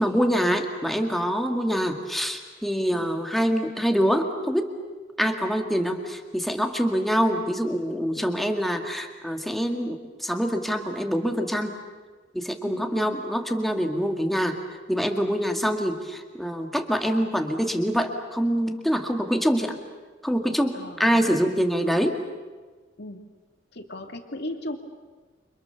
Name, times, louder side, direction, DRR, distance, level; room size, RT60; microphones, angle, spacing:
voice 1, 0.0-4.7 5.2-11.7 12.3-19.8 20.2-22.2, equal, ahead, 4 dB, 2.0 m, -25 dB
voice 2, 12.6-13.2 15.6-15.7 20.7-21.2 23.0-23.2 23.7-24.8, left 1 dB, 55° left, 4 dB, 2.7 m, -38 dB
29.5 x 26.5 x 6.9 m, 1.4 s
head